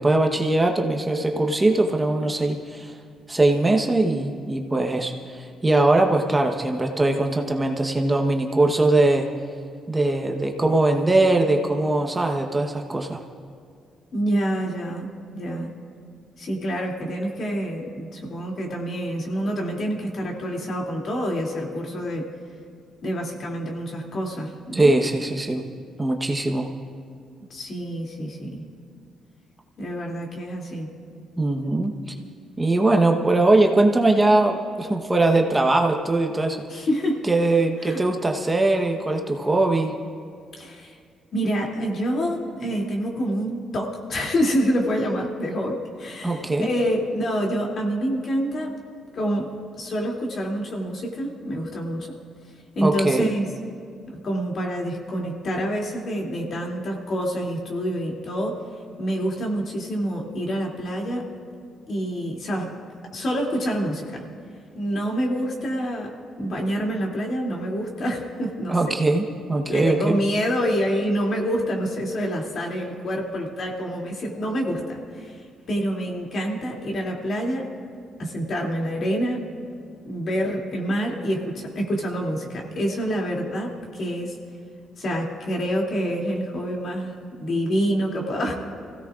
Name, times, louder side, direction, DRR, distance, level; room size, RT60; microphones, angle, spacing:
voice 1, 0.0-2.9 3.3-9.3 9.9-13.2 24.7-25.6 26.0-26.7 31.4-31.9 32.6-36.6 37.2-39.9 46.2-46.7 52.8-53.3 68.7-69.2 69.5-70.2, right 2 dB, 15° right, 3 dB, 1.0 m, -21 dB
voice 2, 14.1-15.1 15.3-15.7 16.4-22.3 23.0-24.9 27.5-28.6 29.8-30.9 36.7-37.2 37.8-38.0 40.6-41.0 41.3-48.7 49.1-49.5 49.8-52.1 52.7-53.5 54.1-58.6 59.0-61.3 61.9-62.7 63.1-64.2 64.7-66.1 66.4-68.9 69.7-75.4 75.7-77.7 78.2-79.4 80.0-84.4 85.0-88.5, equal, 55° left, -1 dB, 2.6 m, -27 dB
26.5 x 16.5 x 2.5 m, 2.2 s
cardioid pair, 90°, 0 cm